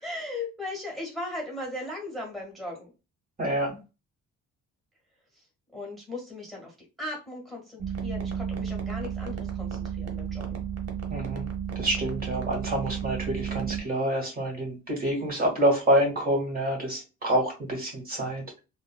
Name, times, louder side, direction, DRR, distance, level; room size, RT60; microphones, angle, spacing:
voice 1, 0.0-2.9 5.7-10.6, left 2 dB, ahead, -2 dB, 1.5 m, -37 dB
voice 2, 3.4-3.8 11.1-11.4 11.7-18.6, right 1 dB, 30° right, 1 dB, 1.6 m, -27 dB
sound 1, 7.8-13.8, right 8 dB, 55° right, 1.0 m, -33 dB
3.7 x 2.0 x 2.2 m, 0.29 s
cardioid pair, 90°, 30 cm